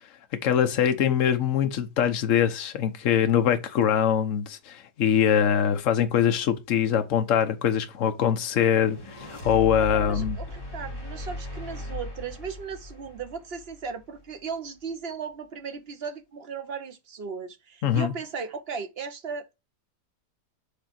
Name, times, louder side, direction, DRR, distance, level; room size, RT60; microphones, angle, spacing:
voice 1, 0.4-10.4 17.8-18.1, left 9 dB, 55° left, 1.1 m, -23 dB
sound 1, 8.7-14.0, left 2 dB, 15° left, 2.7 m, -37 dB
voice 2, 9.9-19.5, right 5 dB, 45° right, 0.8 m, -36 dB
5.3 x 3.8 x 5.8 m
omnidirectional pair, 1.8 m